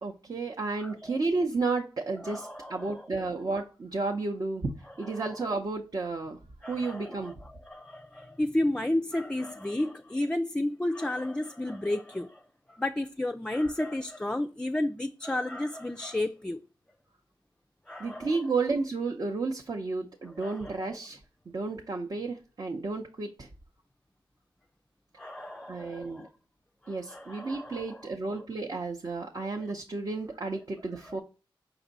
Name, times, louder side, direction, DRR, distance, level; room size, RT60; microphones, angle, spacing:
voice 1, 0.0-7.4 18.0-21.2 21.5-23.5 25.7-26.3 26.9-31.2, right 3 dB, 50° right, 0.7 m, -32 dB
voice 2, 0.8-1.2 2.2-3.1 5.2-5.3 6.6-7.3 7.7-12.4 12.8-16.6 17.9-18.3 20.4-20.8 25.2-26.3 26.8-28.0 29.4-29.5, left 1 dB, 10° left, 0.3 m, -32 dB
4.9 x 2.6 x 4.0 m
cardioid pair, 65°, 9 cm